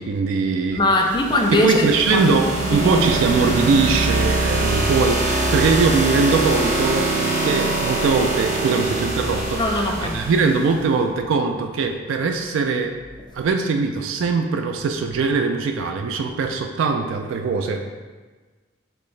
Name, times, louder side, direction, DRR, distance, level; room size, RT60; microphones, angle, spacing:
voice 1, 0.0-0.8 1.5-13.0 13.3-17.8, right 4 dB, 80° right, 5 dB, 0.3 m, -21 dB
voice 2, 0.7-1.8 2.1-2.3 2.6-3.0 9.6-10.2, left 2 dB, 25° left, 1 dB, 0.4 m, -21 dB
sound 1, 1.0-10.8, right 2 dB, 40° right, 0.6 m, -23 dB
4.3 x 3.2 x 3.2 m, 1.4 s
head